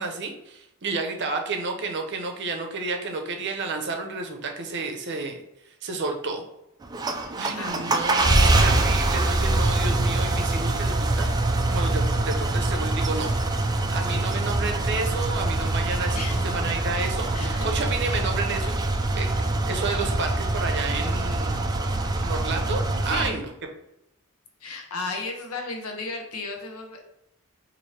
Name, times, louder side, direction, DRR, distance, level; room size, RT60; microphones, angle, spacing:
voice 1, 0.0-5.4 5.8-6.4 7.3-11.3 11.7-13.3 13.9-16.2 16.5-18.7 19.2-21.7 22.2-23.5, right 3 dB, 55° right, 3 dB, 0.6 m, -31 dB
sound 1, 6.8-23.3, right 2 dB, 20° right, 0.3 m, -24 dB
voice 2, 7.6-8.4 16.1-16.9 17.3-17.7 22.9-23.4 24.6-27.0, left 3 dB, 80° left, 2 dB, 0.7 m, -35 dB
4.2 x 2.6 x 3.1 m, 0.86 s
head